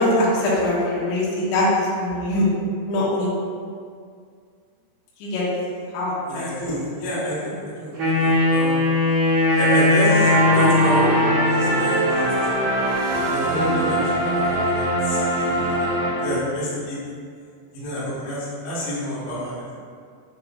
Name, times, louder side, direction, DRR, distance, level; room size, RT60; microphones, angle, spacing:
voice 1, 0.0-2.5 2.9-3.3 5.2-5.4 5.9-6.5, left 1 dB, 80° left, -7 dB, 2.8 m, -22 dB
voice 2, 6.3-7.9 8.2-8.8 9.6-11.1 11.4-12.7 13.3-15.9 16.2-17.0 17.7-19.7, equal, 60° left, -11 dB, 1.8 m, -28 dB
Wind instrument woodwind instrument, 7.9-11.9, left 2 dB, 65° right, 2.0 m, -19 dB
sound 1, 10.1-16.7, right 1 dB, 85° right, 2.8 m, -23 dB
6.8 x 3.0 x 2.4 m, 2.2 s
omnidirectional pair, 5.1 m